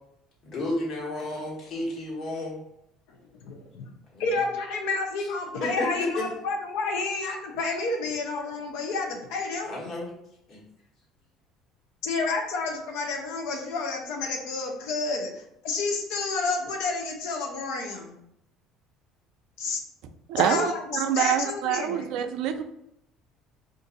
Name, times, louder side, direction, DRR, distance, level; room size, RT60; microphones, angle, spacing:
voice 1, 0.4-2.6 4.1-4.4 5.6-6.2 9.6-10.1 10.5-10.6, left 2 dB, 50° left, 1.3 m, -32 dB
voice 2, 3.1-3.8 4.2-9.7 12.0-18.1 19.6-19.8 20.4-22.1, left 3 dB, 85° left, 0.6 m, -30 dB
voice 3, 20.3-22.6, right 9 dB, 70° right, 0.3 m, -26 dB
2.6 x 2.5 x 4.0 m
cardioid pair, 115°, 0 cm